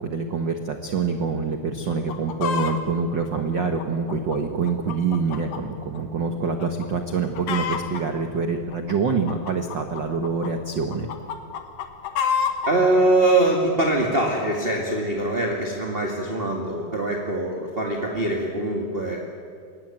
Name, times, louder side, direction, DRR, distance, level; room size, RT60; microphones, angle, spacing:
voice 1, 0.0-11.1, right 5 dB, 80° right, 5 dB, 1.0 m, -26 dB
Chicken rooster, 1.9-2.8 3.4-5.6 5.9-6.0 6.6-6.9 7.1-8.0 8.7-10.5 10.9-12.7 13.4-13.5, left 7 dB, 80° left, 3.2 m, -28 dB
voice 2, 12.7-19.2, right 2 dB, 25° right, 0 dB, 1.4 m, -23 dB
23.5 x 18.0 x 9.0 m, 2.2 s
omnidirectional pair, 4.0 m